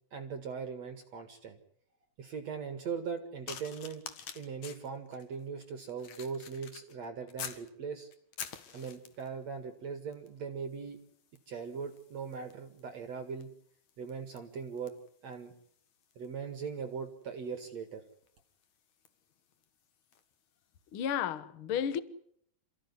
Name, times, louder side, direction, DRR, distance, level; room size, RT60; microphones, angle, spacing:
voice 1, 0.1-1.6 2.2-4.0 4.3-8.1 8.7-11.0 11.5-13.5 14.0-14.9 15.2-15.5 16.2-18.0, right 6 dB, 50° right, 2.6 m, -40 dB
sound 1, 3.5-7.7 8.1-9.4 10.1-10.4 10.7-20.3 21.0-21.2, left 8 dB, 55° left, 2.7 m, -49 dB
voice 2, 20.9-22.0, left 9 dB, 90° left, 1.1 m, -32 dB
28.5 x 15.5 x 9.8 m
omnidirectional pair, 4.3 m